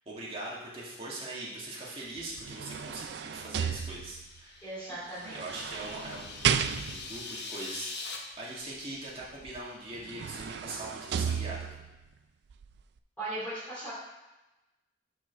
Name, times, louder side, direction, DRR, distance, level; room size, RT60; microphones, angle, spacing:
voice 1, 0.1-5.0 5.3-11.7, right 2 dB, 30° right, -6 dB, 2.0 m, -41 dB
sound 1, 2.2-4.4 5.2-7.2 9.5-9.6 10.0-12.0 12.5-12.6, right 7 dB, 60° right, 0.3 m, -33 dB
sound 2, 4.0-8.2, left 4 dB, 60° left, 1.1 m, -43 dB
voice 2, 4.6-5.6 13.2-13.9, right 1 dB, 10° left, -10 dB, 2.5 m, -38 dB
6.1 x 5.0 x 6.2 m, 1.0 s
head